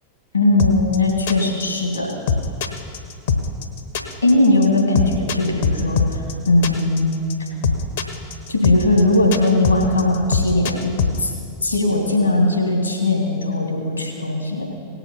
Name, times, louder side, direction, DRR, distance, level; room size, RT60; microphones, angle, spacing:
voice 1, 0.3-2.1 4.2-7.1 8.5-11.3 11.6-14.6, left 2 dB, 80° left, 0 dB, 2.5 m, -19 dB
sound 1, 0.6-11.2, left 5 dB, 60° left, 1.0 m, -21 dB
18.0 x 7.0 x 6.0 m, 2.3 s
figure-of-eight pair, 90°, 0 cm